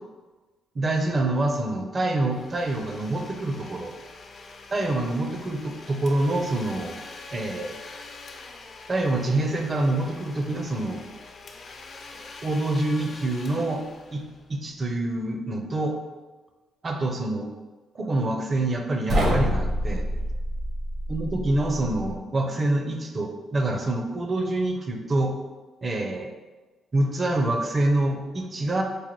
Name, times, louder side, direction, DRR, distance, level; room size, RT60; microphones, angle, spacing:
voice 1, 0.7-3.9 4.7-7.0 7.3-7.7 8.9-11.0 12.4-13.8 14.1-14.2 14.5-15.9 16.8-17.5 17.9-20.0 21.1-25.3 25.8-26.3 26.9-28.8, right 2 dB, 35° right, 4 dB, 0.5 m, -26 dB
Domestic sounds home sounds, 2.2-14.8, left 3 dB, 45° left, 0.4 m, -44 dB
sound 1, 19.1-22.2, equal, 60° right, 0.9 m, -27 dB
4.7 x 2.2 x 3.0 m, 1.2 s
cardioid pair, 90°, 0 cm